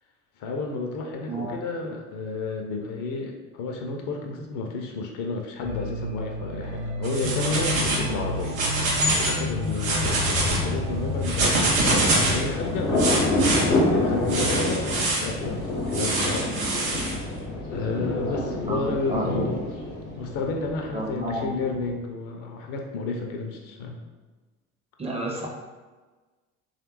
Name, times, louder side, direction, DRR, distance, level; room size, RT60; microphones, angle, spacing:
voice 1, 0.4-8.6 9.2-16.5 17.7-19.6 20.1-24.0, left 3 dB, 50° left, 2 dB, 0.6 m, -31 dB
sound 1, 5.6-22.0, left 2 dB, 50° right, 0.9 m, -33 dB
sound 2, 7.0-8.1 8.4-9.4 9.7-10.6 11.2-12.4 13.0-13.6 14.3-15.3 15.9-17.1, right 2 dB, 80° right, 0.7 m, -25 dB
Thunder, 11.3-20.8, left 1 dB, 80° left, 0.8 m, -28 dB
voice 2, 18.7-19.3 20.9-21.5 25.0-25.5, right 2 dB, 15° right, -1 dB, 0.5 m, -31 dB
3.2 x 2.4 x 3.0 m, 1.3 s
figure-of-eight pair, 55°, 40 cm